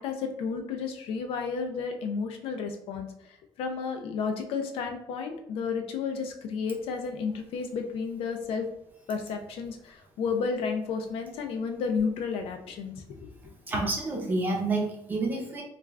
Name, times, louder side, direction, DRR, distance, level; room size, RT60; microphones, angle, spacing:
voice 1, 0.0-8.7 9.1-13.3, left 5 dB, 65° left, 5 dB, 0.4 m, -32 dB
voice 2, 13.7-15.6, right 2 dB, 20° right, -1 dB, 0.6 m, -29 dB
2.3 x 2.3 x 3.2 m, 0.78 s
cardioid pair, 175°, 10 cm